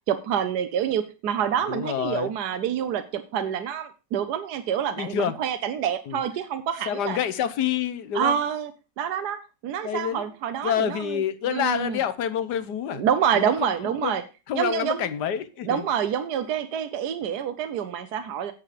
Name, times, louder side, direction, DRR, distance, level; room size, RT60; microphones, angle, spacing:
voice 1, 0.1-7.2 8.1-8.7 9.0-12.0 12.9-14.2 14.5-15.1 15.6-18.5, right 8 dB, 70° right, 9 dB, 1.3 m, -27 dB
voice 2, 1.7-2.3 5.0-5.3 6.1-6.2 6.9-8.4 9.8-10.3 10.6-13.0 13.3-14.2 14.5-15.9, left 9 dB, 70° left, 13 dB, 1.4 m, -27 dB
9.1 x 7.4 x 4.9 m, 0.32 s
omnidirectional pair, 1.9 m